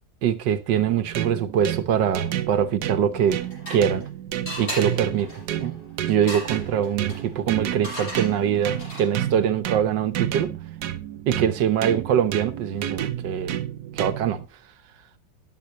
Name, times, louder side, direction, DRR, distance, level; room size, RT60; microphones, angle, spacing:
voice 1, 0.2-3.4 3.7-4.1 4.6-5.8 6.1-10.6 11.3-13.6 14.0-14.4, right 9 dB, 90° right, 1.6 m, -23 dB
sound 1, 0.8-14.5, right 11 dB, 70° right, 1.3 m, -31 dB
sound 2, 3.1-4.1 4.5-9.3, equal, 35° left, 7.5 m, -37 dB
13.5 x 9.8 x 2.9 m
omnidirectional pair, 1.9 m